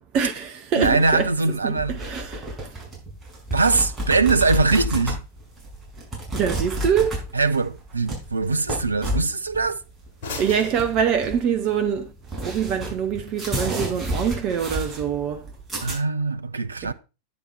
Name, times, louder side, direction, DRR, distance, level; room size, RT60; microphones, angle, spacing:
voice 1, 0.1-1.3 1.6-2.5 6.3-7.2 10.4-12.1 12.4-15.5 16.8-16.9, right 7 dB, 40° right, 0.8 m, -24 dB
sound 1, 0.8-15.9, right 1 dB, 10° right, 5.7 m, -31 dB
voice 2, 0.8-2.0 3.5-5.2 7.3-9.8 15.8-16.9, right 3 dB, 80° right, 0.5 m, -22 dB
sound 2, 3.8-11.8, left 3 dB, 45° left, 4.5 m, -45 dB
10.0 x 7.4 x 4.4 m
figure-of-eight pair, 90°, 0 cm